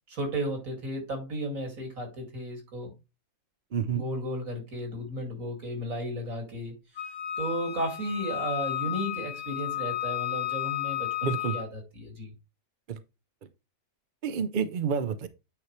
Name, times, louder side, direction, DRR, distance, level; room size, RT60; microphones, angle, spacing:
voice 1, 0.1-2.9 3.9-6.7 7.4-12.3, equal, 80° right, 2.8 m, -34 dB
voice 2, 3.7-4.0 11.2-11.6 12.9-13.0 14.2-15.3, right 7 dB, 50° right, 0.7 m, -29 dB
Wind instrument woodwind instrument, 7.0-11.7, left 12 dB, 70° left, 1.5 m, -33 dB
8.9 x 4.6 x 3.1 m
omnidirectional pair, 1.4 m